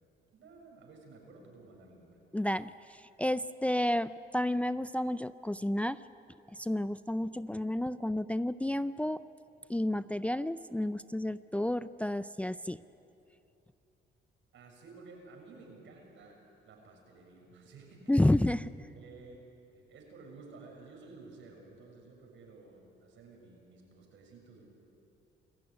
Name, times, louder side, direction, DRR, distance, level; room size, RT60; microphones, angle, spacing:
voice 1, 0.3-2.2 14.5-18.3 18.9-24.6, right 3 dB, 75° right, 1 dB, 7.0 m, -53 dB
voice 2, 2.3-6.0 6.5-9.2 9.7-12.8 18.1-18.6, left 1 dB, 5° left, 14 dB, 0.5 m, -31 dB
28.0 x 15.5 x 9.7 m, 2.8 s
cardioid pair, 90°, 20 cm